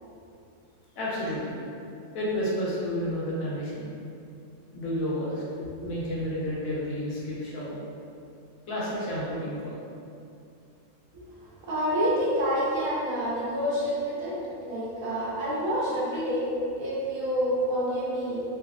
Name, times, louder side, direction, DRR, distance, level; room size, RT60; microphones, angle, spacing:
voice 1, 1.0-1.7 2.1-3.8 4.7-5.4 5.8-7.8 8.7-9.7, equal, 90° left, -7 dB, 1.2 m, -31 dB
voice 2, 5.5-5.9 11.1-11.3 11.7-16.5 16.8-18.4, equal, 85° right, -7 dB, 1.2 m, -28 dB
3.1 x 2.3 x 2.3 m, 2.5 s
omnidirectional pair, 1.4 m